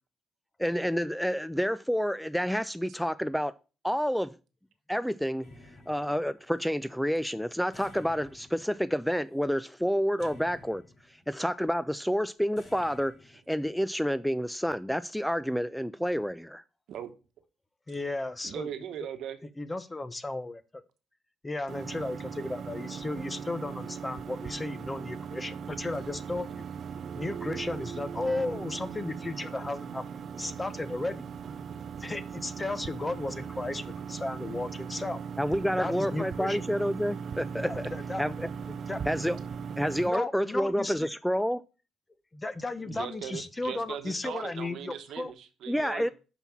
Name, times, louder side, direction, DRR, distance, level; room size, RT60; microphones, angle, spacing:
voice 1, 0.6-3.5 3.8-4.4 4.9-5.5 5.9-10.8 11.3-16.6 35.4-37.9 38.2-38.5 39.1-39.4 39.8-41.6 45.7-46.1, equal, ahead, 0.3 m, -29 dB
sound 1, 5.4-6.7 7.7-9.4 10.2-11.3 12.6-13.4, left 2 dB, 55° left, 3.6 m, -54 dB
voice 2, 17.9-18.7 19.6-20.8 21.4-26.6 27.2-30.0 30.3-31.2 32.0-35.2 35.8-36.6 37.6-38.2 38.9-39.0 39.3-39.4 40.1-41.1 42.3-45.3, left 2 dB, 20° left, 0.8 m, -34 dB
voice 3, 18.4-19.4 42.8-46.1, right 9 dB, 75° right, 1.0 m, -39 dB
sound 2, 21.7-40.1, right 6 dB, 55° right, 0.5 m, -39 dB
6.1 x 5.4 x 5.8 m
cardioid pair, 90°, 0 cm